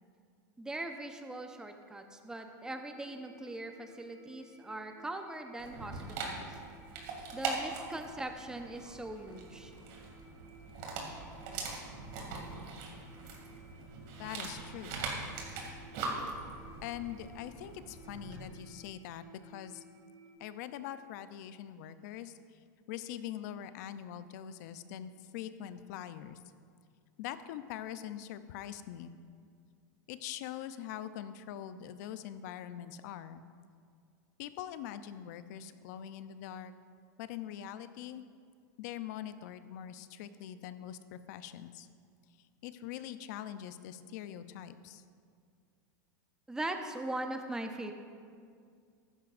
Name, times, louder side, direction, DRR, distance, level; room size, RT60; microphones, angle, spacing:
voice 1, 0.6-6.5 7.3-9.7 46.5-47.9, right 1 dB, 5° right, 5 dB, 0.8 m, -40 dB
sound 1, 2.6-20.4, right 2 dB, 80° right, 2.5 m, -58 dB
Dog, 5.6-18.5, right 4 dB, 55° right, 2.4 m, -42 dB
voice 2, 14.2-15.0 16.8-19.8 20.4-22.6 22.9-26.4 27.2-29.2 30.1-33.4 34.4-36.7 37.2-38.2 38.8-41.9 42.6-45.0, left 10 dB, 65° left, 12 dB, 0.6 m, -43 dB
14.5 x 12.0 x 2.6 m, 2.2 s
supercardioid pair, 130°, 10 cm